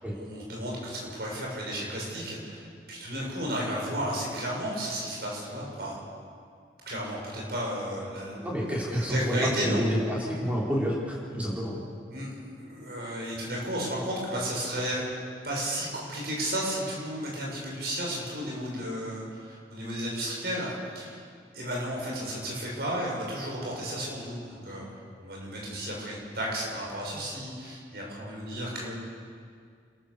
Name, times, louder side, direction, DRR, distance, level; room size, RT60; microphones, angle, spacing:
voice 1, 0.0-6.0 6.8-9.9 12.1-15.1 15.4-21.2 21.5-24.9 25.2-28.9, equal, 65° right, -3 dB, 7.2 m, -33 dB
voice 2, 8.4-9.4 9.6-10.0 10.2-11.8, equal, 10° right, -6 dB, 5.1 m, -29 dB
29.0 x 13.5 x 7.3 m, 2.2 s
head